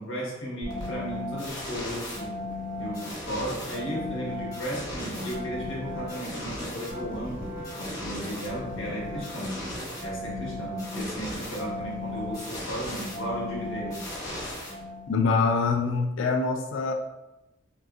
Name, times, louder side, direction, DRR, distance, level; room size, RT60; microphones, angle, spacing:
voice 1, 0.0-2.4 2.8-9.6 10.0-14.1, equal, 90° left, -4 dB, 1.1 m, -35 dB
sound 1, 0.6-15.3, left 1 dB, 20° left, 0.9 m, -36 dB
voice 2, 15.1-16.9, left 4 dB, 75° left, 4 dB, 0.3 m, -24 dB
3.7 x 2.4 x 2.3 m, 0.97 s
head